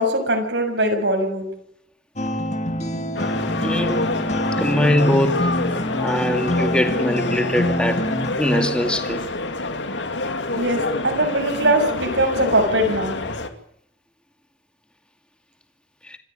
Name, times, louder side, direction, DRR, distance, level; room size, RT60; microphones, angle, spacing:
voice 1, 0.0-1.5 10.5-13.2, right 1 dB, 75° right, 6.9 m, -21 dB
sound 1, 2.2-8.3, left 1 dB, 40° left, 2.3 m, -25 dB
sound 2, 3.1-13.5, left 2 dB, 80° left, 2.3 m, -27 dB
voice 2, 3.6-4.1 4.6-5.5 6.0-8.1 8.4-9.2 10.9-11.0 16.0-16.2, equal, 5° left, 2.4 m, -22 dB
27.0 x 15.0 x 9.0 m
head